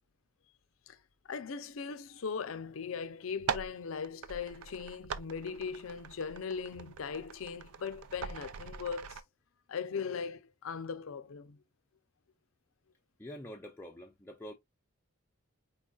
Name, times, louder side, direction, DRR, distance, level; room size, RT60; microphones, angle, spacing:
voice 1, 1.3-9.2 9.7-11.6, left 6 dB, 70° left, 0.5 m, -39 dB
sound 1, 3.3-9.2, right 7 dB, 90° right, 0.5 m, -42 dB
voice 2, 13.2-14.5, equal, 10° left, 0.4 m, -46 dB
4.5 x 3.8 x 2.3 m
head